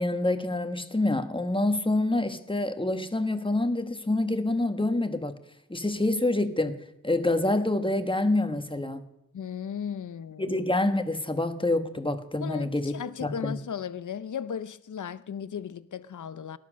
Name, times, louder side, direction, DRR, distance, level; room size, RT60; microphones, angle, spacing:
voice 1, 0.0-5.3 5.7-6.8 7.0-9.0 10.4-12.9 13.2-13.5, left 2 dB, 15° left, 1.3 m, -27 dB
voice 2, 9.3-10.6 12.4-16.6, left 8 dB, 75° left, 0.7 m, -36 dB
19.0 x 10.5 x 6.4 m
wide cardioid pair, 70°, 31 cm